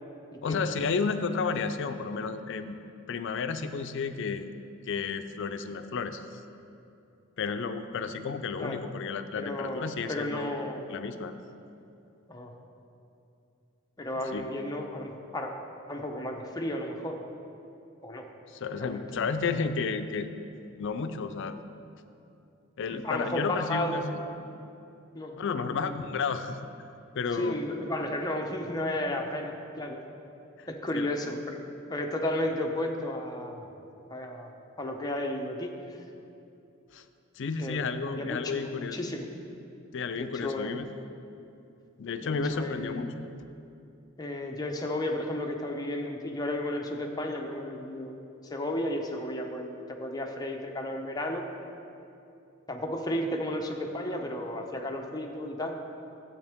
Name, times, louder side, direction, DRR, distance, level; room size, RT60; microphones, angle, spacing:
voice 1, 0.4-2.7 3.1-4.5 4.9-6.4 7.4-10.5 10.9-11.3 14.3-14.5 18.5-20.3 20.8-21.6 22.8-24.2 25.4-26.6 27.1-27.6 30.6-30.7 30.9-31.1 36.9-37.0 37.4-39.0 39.9-40.8 42.0-43.3, left 5 dB, 65° left, 9 dB, 0.5 m, -32 dB
voice 2, 9.4-10.8 12.3-12.6 14.0-15.5 15.9-17.2 18.0-18.3 18.8-19.2 22.9-24.0 24.4-24.5 25.1-25.4 25.6-26.0 27.3-30.0 30.7-31.6 31.9-33.7 34.1-34.5 34.8-36.0 37.6-37.8 38.1-39.3 40.2-40.7 42.2-43.1 44.2-48.1 48.4-51.5 52.7-55.8, left 1 dB, 20° left, 2 dB, 0.8 m, -33 dB
12.0 x 8.0 x 3.5 m, 2.7 s
head